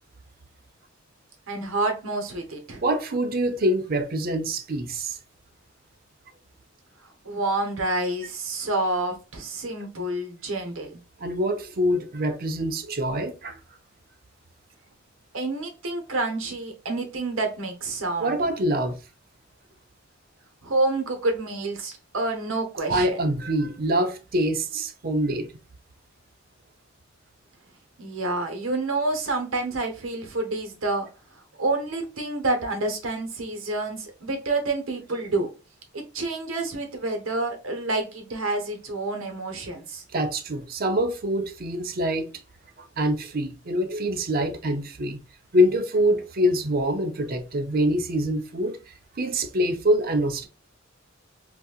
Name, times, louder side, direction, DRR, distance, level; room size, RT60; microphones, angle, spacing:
voice 1, 1.5-2.8 7.2-10.9 15.3-18.4 20.6-23.1 28.0-31.1 31.6-35.5 35.9-40.0, right 2 dB, 75° right, 1.0 m, -28 dB
voice 2, 2.8-5.2 11.2-13.6 18.2-19.0 22.9-25.5 40.1-42.3 42.8-45.2 45.5-50.5, equal, 45° right, 0.6 m, -25 dB
3.9 x 2.7 x 2.3 m
head